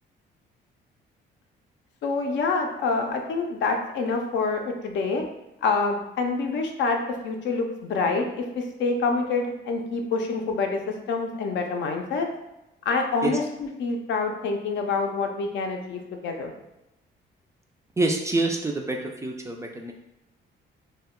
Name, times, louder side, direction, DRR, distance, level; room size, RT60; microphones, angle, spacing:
voice 1, 2.0-5.2 5.6-12.3 12.9-16.5, left 4 dB, 65° left, 3 dB, 0.5 m, -27 dB
voice 2, 18.0-19.9, right 2 dB, 15° right, 2 dB, 0.3 m, -26 dB
2.2 x 2.1 x 3.5 m, 0.92 s
cardioid pair, 90°, 20 cm